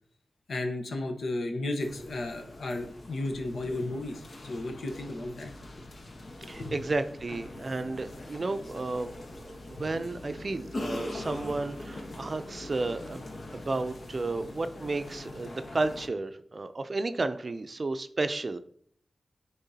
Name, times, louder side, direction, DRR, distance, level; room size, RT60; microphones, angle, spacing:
voice 1, 0.5-5.5 6.6-6.7, left 2 dB, 80° left, 4 dB, 1.0 m, -34 dB
sound 1, 1.8-16.1, left 2 dB, 65° left, 1.0 m, -42 dB
voice 2, 6.5-13.2 13.5-18.6, right 3 dB, 50° right, 10 dB, 0.4 m, -32 dB
9.7 x 3.7 x 2.8 m, 0.64 s
cardioid pair, 55°, 0 cm